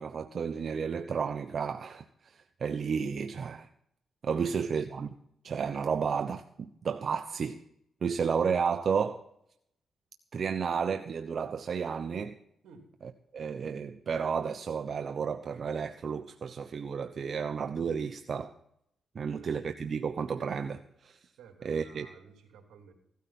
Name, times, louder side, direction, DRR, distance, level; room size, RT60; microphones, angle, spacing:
voice 1, 0.0-3.7 4.2-5.1 5.4-7.6 8.0-9.2 10.3-12.4 13.0-18.5 19.1-21.2 21.6-22.1, right 6 dB, 60° right, 0.9 m, -32 dB
voice 2, 4.3-4.7 12.6-12.9 19.2-19.5 21.4-22.9, right 6 dB, 85° right, 3.2 m, -54 dB
16.0 x 13.0 x 4.3 m
cardioid pair, 65°, 0 cm